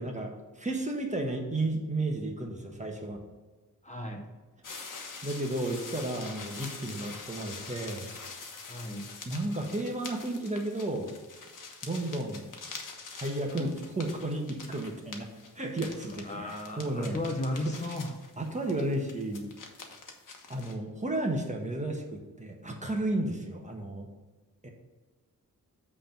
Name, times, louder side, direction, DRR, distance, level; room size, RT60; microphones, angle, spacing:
voice 1, 0.0-3.2 5.2-8.1 9.2-11.1 11.8-12.4 13.1-15.3 15.5-17.2 17.6-17.7 18.4-19.5 20.5-24.1 24.6-24.7, right 1 dB, 20° right, 1 dB, 1.3 m, -33 dB
voice 2, 3.8-4.2 8.7-9.1 16.0-18.1, left 1 dB, 20° left, 1 dB, 1.0 m, -35 dB
sound 1, 4.6-20.7, left 4 dB, 65° left, 1.2 m, -45 dB
7.9 x 3.7 x 5.9 m, 1.3 s
wide cardioid pair, 90°, 34 cm